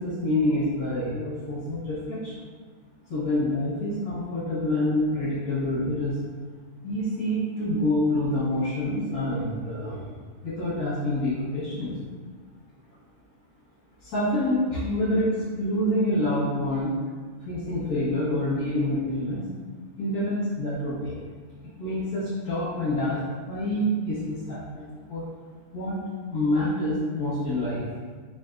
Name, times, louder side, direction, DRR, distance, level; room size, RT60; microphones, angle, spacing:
voice 1, 0.0-2.3 3.1-6.2 6.8-10.0 10.4-11.9 14.1-16.9 17.5-19.5 20.0-21.2 21.8-23.2 23.5-24.8 25.1-25.2 25.7-26.0 26.3-27.8, left 1 dB, 85° left, -13 dB, 1.9 m, -27 dB
5.3 x 2.6 x 2.6 m, 1.5 s
omnidirectional pair, 1.6 m